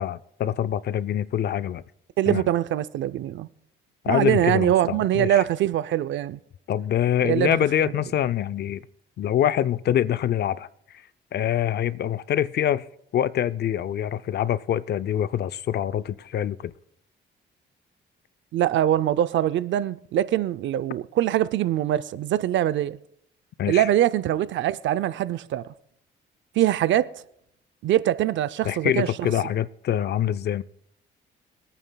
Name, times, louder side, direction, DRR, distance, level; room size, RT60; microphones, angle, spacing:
voice 1, 0.0-1.8 2.3-2.4 4.0-5.4 6.7-8.8 9.2-10.7 11.3-12.8 13.1-16.7 23.6-23.8 28.6-30.6, left 10 dB, 55° left, 0.5 m, -25 dB
voice 2, 2.2-3.5 4.1-6.4 7.2-7.6 18.5-23.0 23.7-25.7 26.6-27.1 27.8-29.3, right 12 dB, 70° right, 0.5 m, -23 dB
24.0 x 9.1 x 2.3 m
cardioid pair, 90°, 20 cm